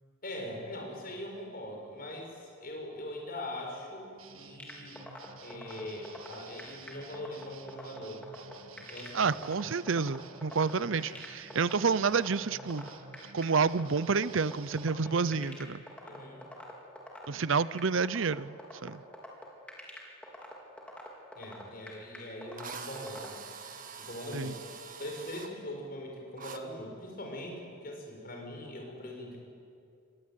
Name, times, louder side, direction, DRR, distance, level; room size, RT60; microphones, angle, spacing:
voice 1, 0.2-5.0 5.4-8.3 8.7-9.4 10.8-10.9 15.0-15.5 16.0-16.4 21.3-23.3 24.0-24.7 25.0-29.4, left 1 dB, 45° left, 1 dB, 6.3 m, -42 dB
sound 1, 4.2-14.9, right 6 dB, 90° right, 1.5 m, -52 dB
sound 2, 4.6-23.3, left 1 dB, 5° left, 4.1 m, -45 dB
voice 2, 9.1-12.9 13.3-15.8 17.3-19.0 24.3-24.5, right 5 dB, 65° right, 17 dB, 0.6 m, -29 dB
Drill, 21.9-22.0 22.6-25.5 26.4-26.6, right 6 dB, 40° right, 1.7 m, -45 dB
26.5 x 21.5 x 9.3 m, 2.4 s
head